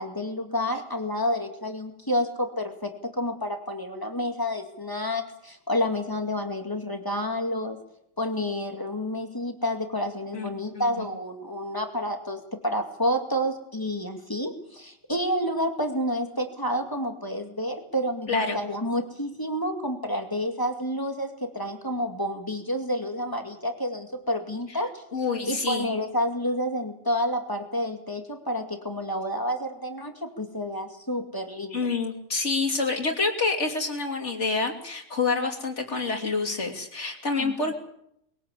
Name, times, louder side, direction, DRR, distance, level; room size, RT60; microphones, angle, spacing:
voice 1, 0.0-7.8 8.2-25.0 25.5-31.8 37.4-37.7, equal, 15° left, 4 dB, 2.4 m, -29 dB
voice 2, 10.3-11.0 18.3-18.6 25.1-25.9 31.7-37.7, left 4 dB, 65° left, 3 dB, 3.2 m, -27 dB
22.0 x 17.0 x 8.3 m, 0.77 s
omnidirectional pair, 1.3 m